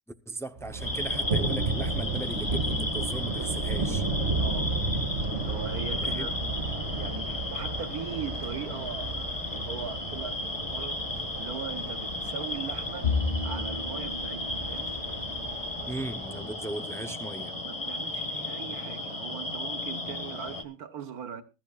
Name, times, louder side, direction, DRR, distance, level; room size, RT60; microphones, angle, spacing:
voice 1, 0.3-4.1 6.0-6.3 15.9-17.6, right 2 dB, 5° left, 0.4 m, -37 dB
Thunder, 0.6-16.5, right 3 dB, 45° right, 2.3 m, -33 dB
sound 1, 0.8-20.6, left 2 dB, 20° left, 1.6 m, -35 dB
voice 2, 4.4-4.8 5.4-13.1 13.4-14.9 17.6-21.4, right 7 dB, 80° right, 1.7 m, -40 dB
Bowed string instrument, 13.0-16.5, left 4 dB, 50° left, 2.9 m, -34 dB
22.0 x 12.5 x 2.4 m
omnidirectional pair, 1.5 m